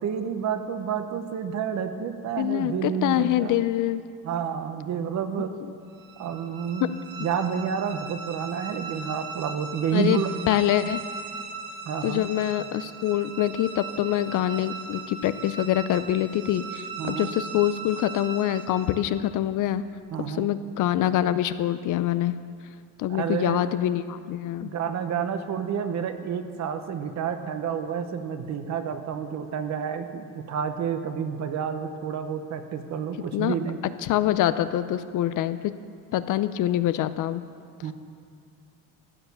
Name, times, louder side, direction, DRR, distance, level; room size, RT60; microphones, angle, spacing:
voice 1, 0.0-3.6 4.2-5.5 6.2-6.9 7.2-10.3 11.8-12.2 17.0-17.3 20.1-20.5 23.1-23.6 24.6-33.8 37.8-37.9, right 7 dB, 45° right, 8 dB, 1.0 m, -29 dB
voice 2, 2.4-4.0 5.5-5.7 6.8-6.9 9.9-10.2 10.5-11.0 12.0-19.8 20.3-22.4 23.0-24.7 33.3-33.6 34.0-35.7 36.1-37.4, left 12 dB, 50° left, 13 dB, 0.5 m, -25 dB
sound 1, 5.9-19.3, right 4 dB, 60° right, 1.9 m, -39 dB
14.0 x 9.3 x 6.8 m, 2.4 s
cardioid pair, 140°, 39 cm